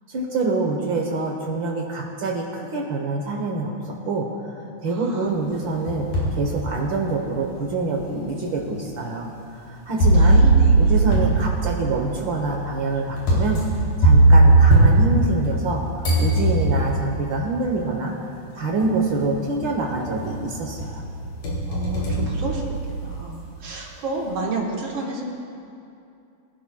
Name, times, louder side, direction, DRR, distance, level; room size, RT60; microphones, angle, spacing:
voice 1, 0.1-3.7 4.0-6.1 6.4-10.4 10.8-13.6 14.0-18.1 18.5-21.0, right 3 dB, 75° right, 0 dB, 1.1 m, -26 dB
voice 2, 4.9-5.3 9.9-10.7 21.7-22.8 23.0-25.2, right 2 dB, 50° right, -2 dB, 1.7 m, -30 dB
sound 1, 5.5-6.4 7.0-7.1 8.0-8.1 10.0-15.7 16.0-17.0 18.2-18.3 18.8-19.2 19.6-20.4 20.8-23.2, right 2 dB, 90° left, 4.4 m, -18 dB
23.0 x 11.5 x 2.2 m, 2.6 s
omnidirectional pair, 3.6 m